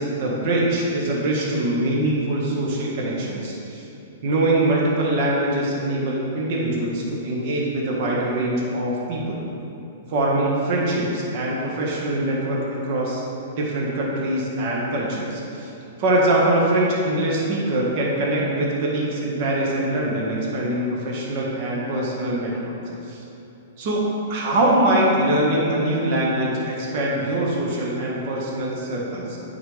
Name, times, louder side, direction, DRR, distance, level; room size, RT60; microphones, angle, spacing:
voice 1, 0.0-3.8 4.2-9.4 10.1-13.2 13.6-15.7 16.0-22.8 23.1-23.2 23.8-29.4, right 1 dB, 50° right, -4 dB, 1.5 m, -23 dB
9.3 x 4.7 x 3.4 m, 2.9 s
hypercardioid pair, 120°, 0 cm